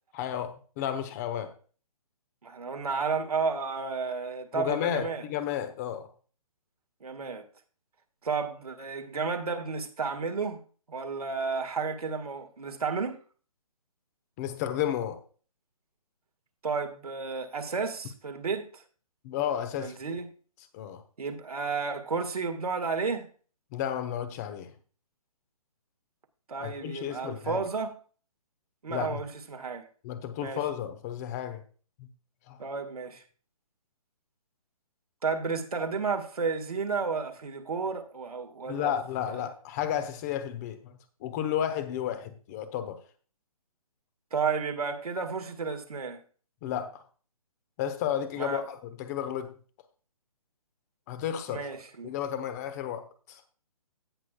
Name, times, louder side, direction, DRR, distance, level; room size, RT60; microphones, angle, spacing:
voice 1, 0.1-1.5 4.5-6.1 14.4-15.2 19.2-20.0 20.7-21.0 23.7-24.7 26.6-27.7 28.9-29.2 30.0-31.6 32.0-32.1 32.5-32.6 38.7-43.0 46.6-47.0 47.8-49.5 51.1-51.7 52.0-53.4, left 10 dB, 30° left, 1.0 m, -32 dB
voice 2, 2.4-5.2 7.0-7.4 8.2-10.6 10.9-13.2 16.6-18.8 19.8-20.3 21.2-23.3 26.5-27.9 28.8-29.9 30.4-30.6 32.6-33.2 35.2-38.9 39.4-39.5 44.3-46.2 48.4-48.6 51.5-52.1, right 5 dB, 80° right, 1.8 m, -32 dB
16.5 x 6.2 x 2.3 m
hypercardioid pair, 145°, 19 cm